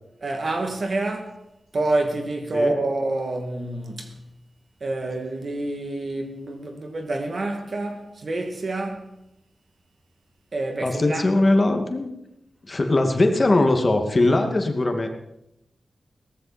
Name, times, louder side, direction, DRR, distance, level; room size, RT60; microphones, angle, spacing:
voice 1, 0.2-1.4 1.7-4.2 4.8-9.2 10.5-11.3, right 2 dB, 55° right, 2.4 m, -27 dB
voice 2, 10.8-12.1 12.6-15.1, left 2 dB, 40° left, 2.1 m, -20 dB
17.5 x 14.0 x 4.3 m
wide cardioid pair, 75°, 0 cm